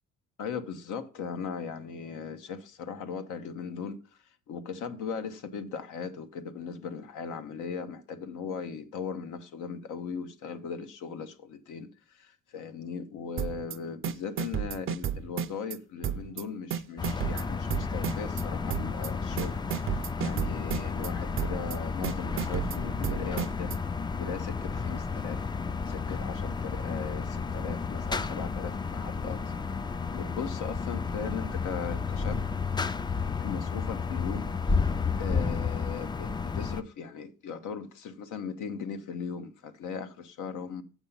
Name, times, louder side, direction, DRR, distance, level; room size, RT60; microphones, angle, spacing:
voice 1, 0.4-4.0 4.5-19.6 19.8-23.8 24.2-25.4 25.9-29.5 30.1-32.5 33.4-40.8, left 6 dB, 80° left, 1.0 m, -38 dB
sound 1, 13.4-13.8 14.0-15.8 16.0-16.4 16.7-18.4 18.7-19.1 19.4-21.1 21.4-21.8 22.0-23.8, right 9 dB, 45° right, 0.5 m, -32 dB
sound 2, 17.0-36.8, left 5 dB, 15° left, 0.3 m, -32 dB
7.3 x 6.0 x 5.4 m
cardioid pair, 90°, 30 cm